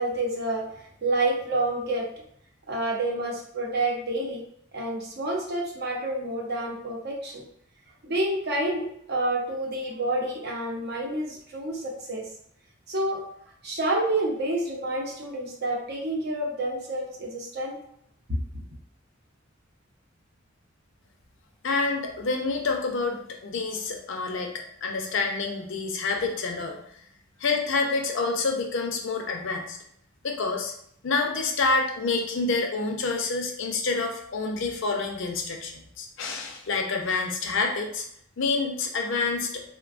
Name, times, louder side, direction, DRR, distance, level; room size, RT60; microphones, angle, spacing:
voice 1, 0.0-2.1 2.7-4.4 4.7-7.4 8.0-12.2 12.9-13.2 13.6-17.8 18.3-18.6, right 1 dB, 55° right, -1 dB, 0.7 m, -28 dB
voice 2, 21.6-24.5 24.8-26.8 27.4-29.8 30.2-30.7 31.0-38.0 38.4-39.6, left 3 dB, 65° left, 2 dB, 0.5 m, -28 dB
3.3 x 2.2 x 2.4 m, 0.68 s
head